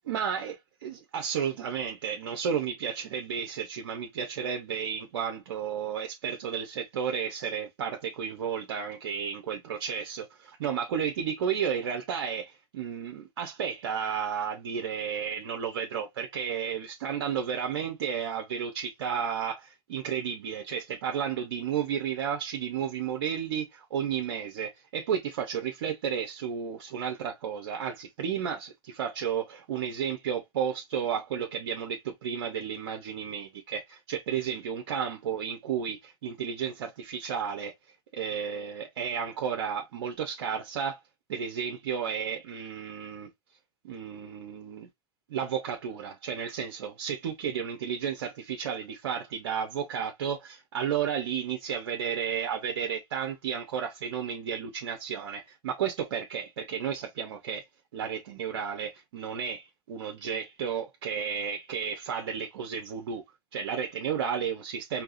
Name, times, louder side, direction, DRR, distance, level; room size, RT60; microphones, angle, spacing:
voice 1, 0.1-0.5 0.8-37.7 38.1-41.0 41.3-43.3 43.8-44.9 45.3-57.6 57.9-63.2 63.5-65.0, right 7 dB, 90° right, 0.7 m, -32 dB
4.6 x 2.7 x 2.5 m
hypercardioid pair, 105°, 14 cm